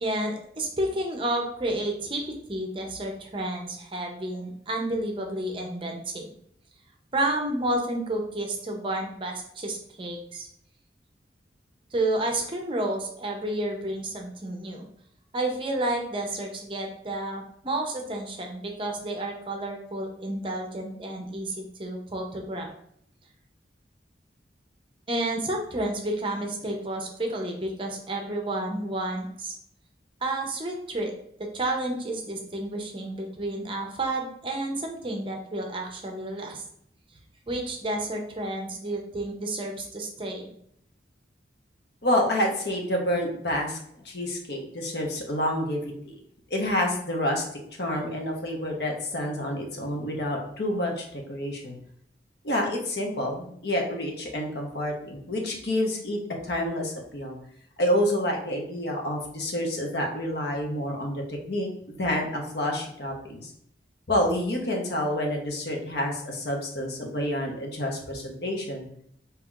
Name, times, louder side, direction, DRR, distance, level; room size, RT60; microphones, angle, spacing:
voice 1, 0.0-2.2 2.5-6.3 7.1-10.5 11.9-14.9 15.3-22.7 25.1-29.6 30.2-31.1 31.4-36.6 37.5-40.5, right 1 dB, 30° right, 2 dB, 0.6 m, -30 dB
voice 2, 42.0-43.8 44.0-46.2 46.5-47.4 47.8-51.8 52.4-57.4 57.8-63.5 64.1-68.9, left 1 dB, 60° left, 1 dB, 0.9 m, -28 dB
5.4 x 2.9 x 2.4 m, 0.70 s
head